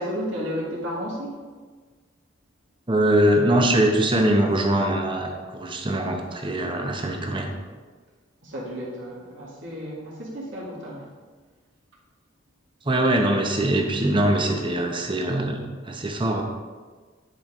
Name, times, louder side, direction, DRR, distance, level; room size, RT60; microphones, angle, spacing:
voice 1, 0.0-1.4 8.4-11.1, equal, 70° right, -5 dB, 2.2 m, -32 dB
voice 2, 2.9-7.5 12.8-16.4, right 1 dB, 25° right, 2 dB, 0.9 m, -22 dB
10.0 x 5.1 x 3.7 m, 1.5 s
head